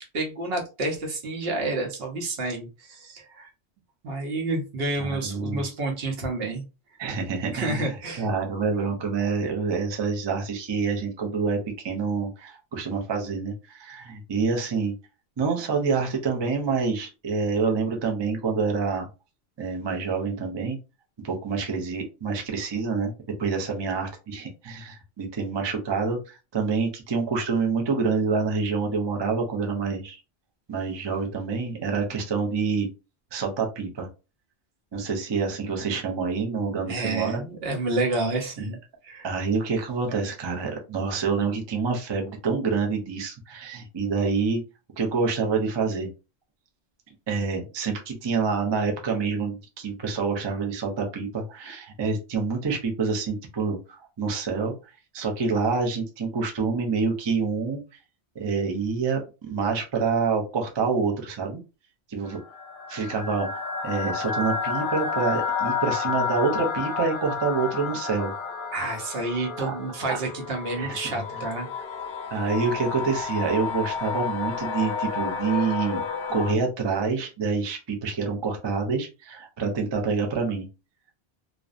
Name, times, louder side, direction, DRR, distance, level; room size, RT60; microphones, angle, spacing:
voice 1, 0.1-3.5 4.0-6.6 7.5-8.3 36.9-38.8 39.0-39.3 68.7-71.7, right 2 dB, 65° right, 2 dB, 0.9 m, -29 dB
voice 2, 5.0-5.6 7.0-11.6 11.8-14.9 15.4-19.1 19.6-20.8 21.2-23.1 23.4-30.2 30.7-32.9 33.3-34.1 34.9-37.4 38.6-38.7 39.2-44.6 45.0-46.1 47.3-53.8 54.2-54.7 55.1-57.8 58.4-61.6 62.1-62.4 62.9-68.3 69.6-69.7 70.8-71.0 71.8-71.9 72.3-76.0 76.3-80.7, right 4 dB, 40° right, 2 dB, 0.4 m, -27 dB
sound 1, 62.3-76.5, left 6 dB, 60° left, 0.6 m, -31 dB
2.5 x 2.0 x 2.4 m, 0.30 s
omnidirectional pair, 1.1 m